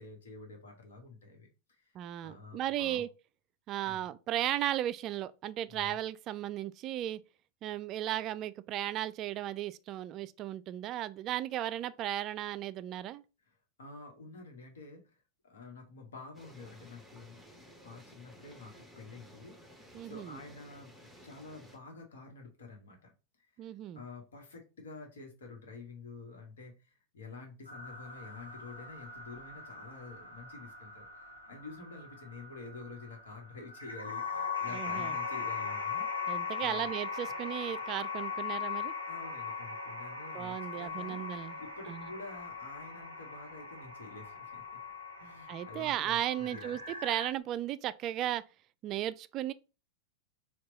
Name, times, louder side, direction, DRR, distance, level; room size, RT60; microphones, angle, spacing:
voice 1, 0.0-1.9 2.2-3.0 3.8-4.0 5.7-6.0 13.5-23.1 23.4-36.1 36.6-36.9 37.3-37.4 37.7-37.8 39.1-44.8 45.2-46.8, left 3 dB, 65° left, 1.2 m, -49 dB
voice 2, 1.9-3.1 3.7-7.2 7.6-13.2 19.9-20.4 23.6-24.0 34.7-35.1 36.3-38.9 40.3-41.6 41.9-42.1 45.5-48.4 48.8-49.5, right 12 dB, 35° right, 0.3 m, -35 dB
sound 1, 16.3-21.8, equal, ahead, 0.9 m, -55 dB
sound 2, 27.6-47.3, left 5 dB, 85° left, 1.0 m, -40 dB
4.5 x 2.3 x 3.9 m
figure-of-eight pair, 90°, 0 cm